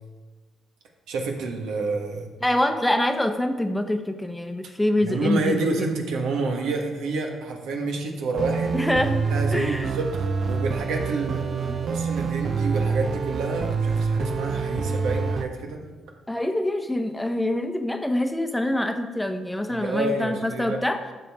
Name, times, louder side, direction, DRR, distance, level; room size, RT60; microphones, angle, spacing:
voice 1, 1.1-2.3 5.0-8.8 9.3-15.8 19.7-20.8, right 3 dB, 85° right, 2 dB, 1.4 m, -29 dB
voice 2, 2.4-5.7 8.7-9.2 9.5-9.9 16.3-21.0, left 1 dB, 10° left, 6 dB, 0.8 m, -25 dB
sound 1, 8.3-15.5, right 5 dB, 45° right, 0.7 m, -26 dB
12.0 x 6.8 x 3.6 m, 1.3 s
cardioid pair, 90°, 0 cm